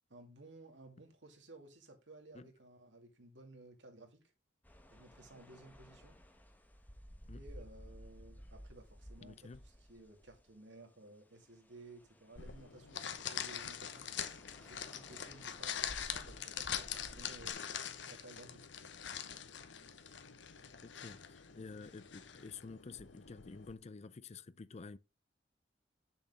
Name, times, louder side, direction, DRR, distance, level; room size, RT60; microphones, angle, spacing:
voice 1, 0.1-4.2 4.9-6.2 7.3-14.1 14.6-17.6 18.1-18.7, right 2 dB, 90° right, 2.3 m, -56 dB
sound 1, 4.6-10.8 11.3-17.5, equal, 10° left, 1.2 m, -56 dB
voice 2, 9.2-9.6 20.8-25.0, left 4 dB, 35° left, 0.5 m, -50 dB
sound 2, 12.4-23.7, left 8 dB, 85° left, 1.0 m, -44 dB
8.0 x 6.9 x 3.6 m
head